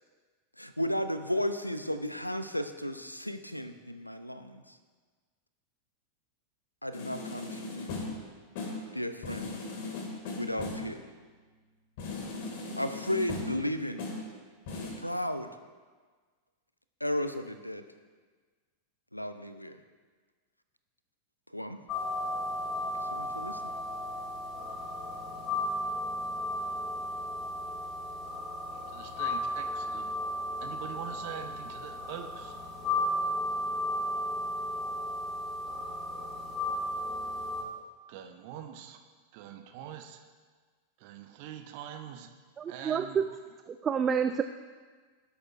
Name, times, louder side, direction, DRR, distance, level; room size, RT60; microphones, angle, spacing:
voice 1, 0.6-4.8 6.8-8.0 8.9-9.5 10.4-11.0 12.7-14.0 15.0-15.5 17.0-17.8 19.1-19.8 21.5-21.8 22.8-23.7, left 1 dB, 90° left, 10 dB, 0.6 m, -34 dB
sound 1, 6.9-8.3 8.6-8.9 9.2-10.9 12.0-13.7 14.0-14.3 14.7-14.9, left 3 dB, 50° left, 2.1 m, -38 dB
sound 2, 21.9-37.6, left 1 dB, 30° left, 2.1 m, -34 dB
voice 2, 28.7-30.1 30.6-32.5 38.1-39.0 39.3-40.2 41.0-42.3 42.7-43.2, right 9 dB, 45° right, 5 dB, 0.9 m, -44 dB
voice 3, 42.6-43.2 43.7-44.4, right 7 dB, 25° right, 9 dB, 0.4 m, -28 dB
18.0 x 8.5 x 2.5 m, 1.5 s
figure-of-eight pair, 90°, 0 cm